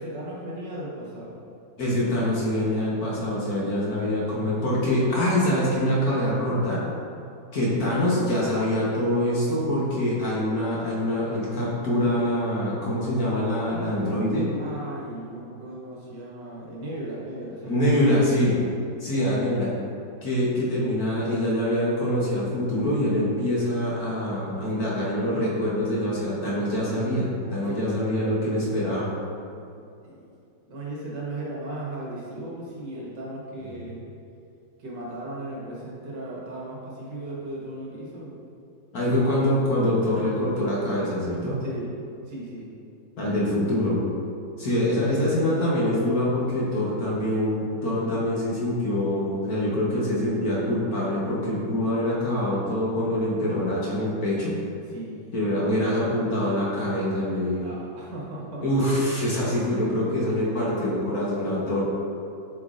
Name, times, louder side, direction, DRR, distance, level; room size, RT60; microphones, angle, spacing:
voice 1, 0.0-1.4 14.5-17.9 24.7-25.0 27.7-27.9 30.0-30.3 30.7-34.1 34.8-38.3 41.6-41.9 42.3-42.7 45.1-45.3 54.8-55.4 57.6-58.6, right 1 dB, 60° right, -5 dB, 1.7 m, -36 dB
voice 2, 1.8-6.8 7.5-14.5 17.6-18.5 19.0-19.7 20.2-29.1 38.9-41.6 43.2-44.0 44.6-54.5 55.3-57.7 58.6-61.8, left 1 dB, 55° left, -6 dB, 1.5 m, -24 dB
7.8 x 5.1 x 2.5 m, 2.6 s
omnidirectional pair, 2.2 m